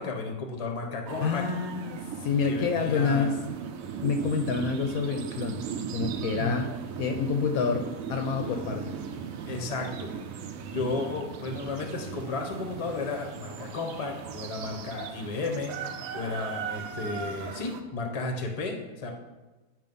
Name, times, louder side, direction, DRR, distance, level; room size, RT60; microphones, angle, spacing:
voice 1, 0.0-1.5 2.4-3.3 6.3-6.6 9.5-10.1 10.6-15.7 16.1-19.1, left 3 dB, 30° left, 2 dB, 0.6 m, -33 dB
sound 1, 1.1-17.8, right 7 dB, 70° right, 0.9 m, -38 dB
voice 2, 1.2-3.4 4.0-5.7 5.9-6.7 7.0-9.0, left 5 dB, 70° left, 5 dB, 0.9 m, -28 dB
sound 2, 8.1-11.1 11.5-14.5, right 4 dB, 45° right, 0.6 m, -50 dB
8.7 x 3.0 x 5.3 m, 1.2 s
omnidirectional pair, 1.7 m